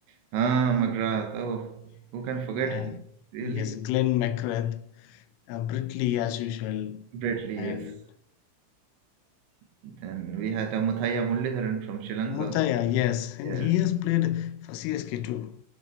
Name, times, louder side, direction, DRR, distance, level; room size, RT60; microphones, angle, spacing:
voice 1, 0.3-3.0 3.3-3.8 7.1-8.0 9.8-12.6 13.4-13.8, right 6 dB, 75° right, 3.2 m, -29 dB
voice 2, 3.4-7.1 7.6-8.0 12.3-15.6, left 13 dB, 80° left, 3.1 m, -28 dB
19.5 x 7.0 x 5.5 m
omnidirectional pair, 6.0 m